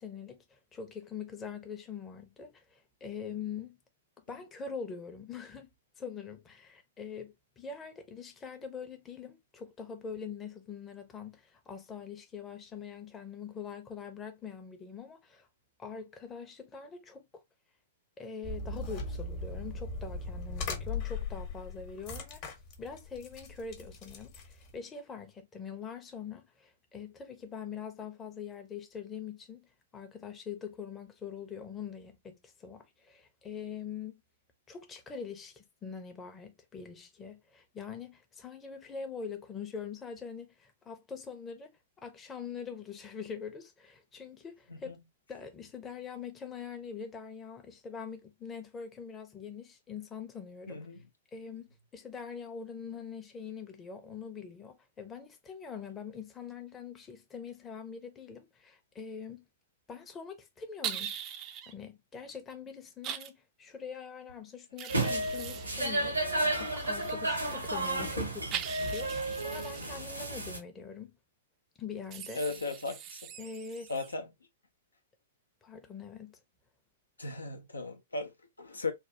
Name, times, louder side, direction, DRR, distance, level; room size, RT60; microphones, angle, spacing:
voice 1, 0.0-3.8 4.3-5.7 6.0-15.5 15.8-17.4 18.2-22.4 22.8-34.2 34.7-41.7 42.0-45.0 45.3-50.9 51.3-59.4 59.9-61.1 61.7-71.1 71.8-72.4 73.4-73.9 75.6-76.4, left 6 dB, 20° left, 0.7 m, -43 dB
sound 1, 18.4-24.8, left 3 dB, 35° left, 1.0 m, -39 dB
voice 2, 50.7-51.0 72.3-73.2 73.9-74.3 77.2-78.9, left 3 dB, 80° left, 0.6 m, -37 dB
sound 2, 60.8-61.7 63.0-63.3 64.8-67.1 68.5-70.2 72.1-74.1, right 10 dB, 30° right, 0.4 m, -41 dB
sound 3, 64.9-70.6, right 2 dB, 85° right, 0.9 m, -32 dB
3.3 x 2.3 x 2.7 m
figure-of-eight pair, 105°, 0 cm